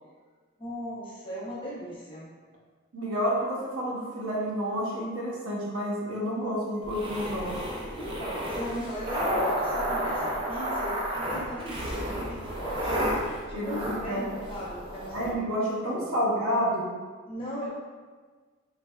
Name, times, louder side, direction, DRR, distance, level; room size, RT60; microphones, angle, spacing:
voice 1, 0.6-2.3 8.0-13.0 13.4-15.5 15.9-16.1 17.3-17.7, equal, 25° left, -7 dB, 0.7 m, -38 dB
voice 2, 2.9-7.6 13.5-13.8 14.1-14.4 15.1-16.9, equal, 80° right, -5 dB, 0.8 m, -29 dB
sound 1, 6.8-15.3, equal, 25° right, 0.4 m, -31 dB
3.3 x 3.2 x 2.3 m, 1.5 s
head